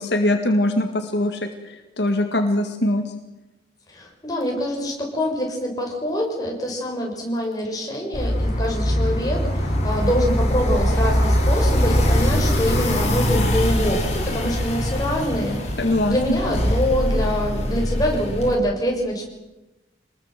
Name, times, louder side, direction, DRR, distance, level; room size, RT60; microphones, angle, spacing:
voice 1, 0.0-3.0 15.8-16.4, left 1 dB, 65° left, 5 dB, 2.0 m, -22 dB
voice 2, 3.9-15.8 16.1-19.2, equal, 20° left, -1 dB, 6.5 m, -25 dB
sound 1, 8.1-18.5, equal, 40° left, 5.7 m, -22 dB
26.0 x 20.5 x 7.7 m, 1.0 s
head